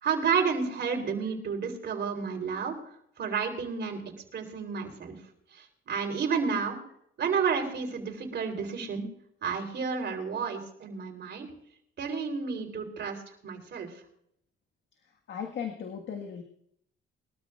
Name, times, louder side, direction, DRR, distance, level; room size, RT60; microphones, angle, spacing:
voice 1, 0.0-2.7 3.2-4.0 4.3-5.2 5.9-6.8 7.2-9.1 9.4-11.5 12.0-13.2 13.4-13.9, right 6 dB, 60° right, 3 dB, 3.6 m, -30 dB
voice 2, 15.3-16.4, left 7 dB, 65° left, 3 dB, 1.6 m, -36 dB
22.5 x 13.0 x 2.4 m, 0.71 s
cardioid pair, 90°, 20 cm